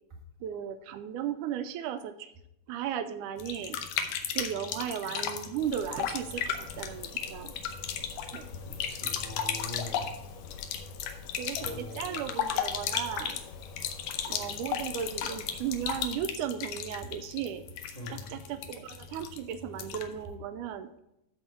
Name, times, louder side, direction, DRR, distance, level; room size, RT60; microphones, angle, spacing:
voice 1, 0.4-2.3 2.7-3.8 4.4-7.5 8.3-8.5 11.4-13.4 14.3-17.6 18.1-20.9, right 9 dB, 80° right, 10 dB, 2.0 m, -36 dB
sound 1, 3.4-20.2, left 8 dB, 90° left, 2.3 m, -35 dB
sound 2, 5.6-16.1, left 5 dB, 75° left, 1.7 m, -48 dB
voice 2, 8.9-10.1 11.6-12.1 17.9-18.2, left 2 dB, 25° right, -1 dB, 1.3 m, -42 dB
13.0 x 4.5 x 4.4 m, 0.82 s
omnidirectional pair, 3.6 m